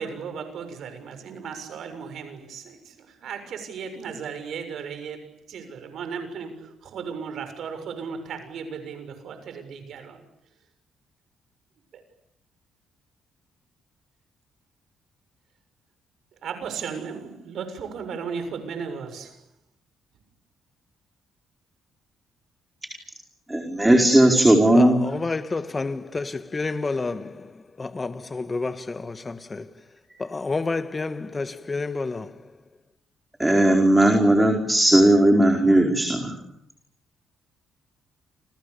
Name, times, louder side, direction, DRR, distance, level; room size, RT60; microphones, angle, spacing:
voice 1, 0.0-10.2 11.9-12.0 16.4-19.4, right 6 dB, 70° right, 6.8 m, -35 dB
voice 2, 23.5-25.0 33.4-36.4, right 1 dB, 10° right, 4.9 m, -17 dB
voice 3, 24.7-29.7 30.2-32.4, left 3 dB, 25° left, 1.8 m, -30 dB
29.5 x 28.5 x 7.0 m
cardioid pair, 85°, 0 cm